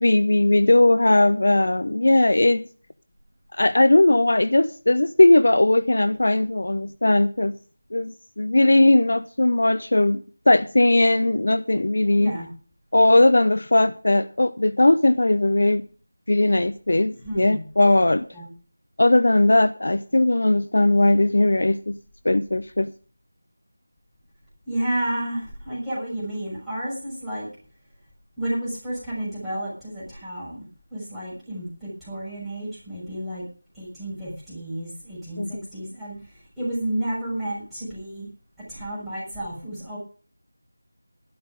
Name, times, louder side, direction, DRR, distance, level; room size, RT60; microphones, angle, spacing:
voice 1, 0.0-2.6 3.6-7.5 7.9-12.4 12.9-15.8 16.3-18.2 19.0-22.0 22.2-22.9 35.4-35.5, left 2 dB, 50° left, 13 dB, 0.7 m, -18 dB
voice 2, 12.2-12.5 17.2-17.6 18.3-18.5 24.7-27.5 28.4-30.6 30.9-33.4 33.7-36.1 36.6-38.3 38.7-40.0, right 1 dB, ahead, -13 dB, 6.4 m, -31 dB
12.0 x 12.0 x 5.1 m, 0.39 s
figure-of-eight pair, 165°, 0 cm